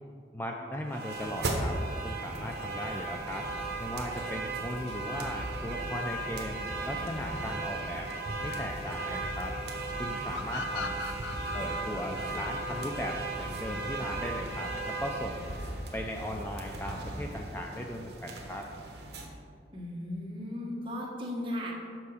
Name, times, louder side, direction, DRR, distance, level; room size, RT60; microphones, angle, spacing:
voice 1, 0.3-1.8 2.0-3.5 3.8-6.6 6.8-8.1 8.4-9.5 10.0-11.0 11.5-15.5 15.9-18.7, equal, 10° left, 1 dB, 0.4 m, -37 dB
sound 1, 0.9-19.3, right 2 dB, 60° right, 1.1 m, -36 dB
sound 2, 10.3-13.7, left 6 dB, 70° left, 0.5 m, -40 dB
voice 2, 19.7-21.7, left 1 dB, 25° right, -4 dB, 1.3 m, -36 dB
6.9 x 5.9 x 4.9 m, 2.3 s
head